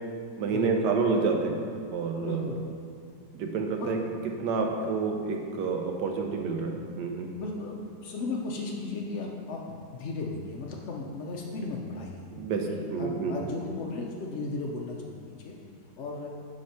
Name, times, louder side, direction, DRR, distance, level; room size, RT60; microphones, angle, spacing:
voice 1, 0.4-1.6 1.9-2.5 3.3-4.0 4.4-7.3 12.4-13.3, right 4 dB, 85° right, 3 dB, 1.4 m, -28 dB
voice 2, 2.2-2.6 3.8-3.9 7.4-7.8 8.0-12.2 12.7-15.5 16.0-16.3, left 3 dB, 60° left, -1 dB, 0.7 m, -35 dB
5.7 x 5.2 x 5.7 m, 2.2 s
omnidirectional pair, 1.8 m